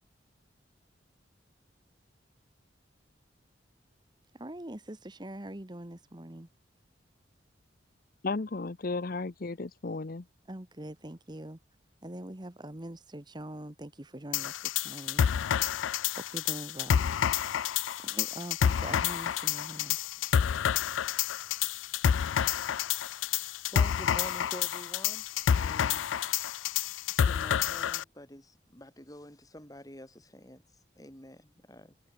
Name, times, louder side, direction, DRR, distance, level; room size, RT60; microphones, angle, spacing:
voice 1, 4.3-6.5 10.5-11.6 12.0-15.5 16.2-20.1, right 1 dB, 25° right, 1.2 m, -43 dB
voice 2, 8.2-10.3, left 3 dB, 50° left, 0.7 m, -34 dB
sound 1, 14.3-28.0, left 8 dB, 90° left, 0.4 m, -29 dB
voice 3, 23.1-26.1 27.3-30.6 31.0-31.9, left 1 dB, 20° left, 4.1 m, -47 dB
head